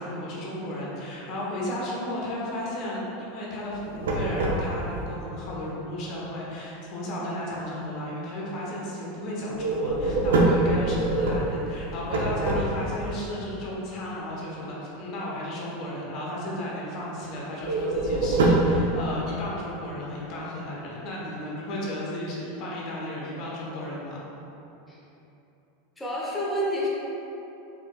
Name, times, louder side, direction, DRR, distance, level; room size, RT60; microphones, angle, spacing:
voice 1, 0.0-24.2, left 1 dB, 50° left, -5 dB, 1.0 m, -34 dB
sound 1, 3.7-5.0 9.6-13.1 17.6-18.8, right 2 dB, 80° right, 0.5 m, -24 dB
voice 2, 26.0-26.9, equal, 10° left, -7 dB, 0.9 m, -28 dB
4.7 x 4.0 x 2.3 m, 3.0 s
hypercardioid pair, 105°, 0 cm